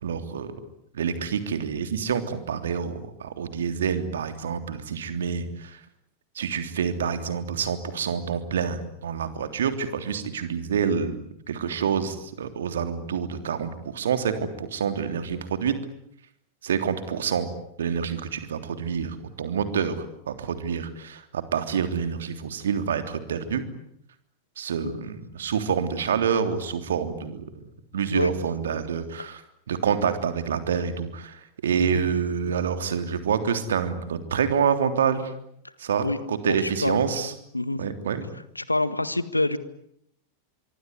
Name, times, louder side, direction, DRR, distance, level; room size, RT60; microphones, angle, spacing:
voice 1, 0.0-0.6 0.9-5.8 6.3-15.8 16.6-17.5 17.8-23.6 24.6-27.5 27.9-29.4 29.7-35.3 35.8-37.3 37.8-38.3, right 7 dB, 65° right, 9 dB, 3.3 m, -27 dB
voice 2, 36.5-37.0 37.5-37.8 38.5-39.6, left 2 dB, 85° left, 15 dB, 1.6 m, -26 dB
25.5 x 23.0 x 9.8 m, 0.76 s
figure-of-eight pair, 90°, 0 cm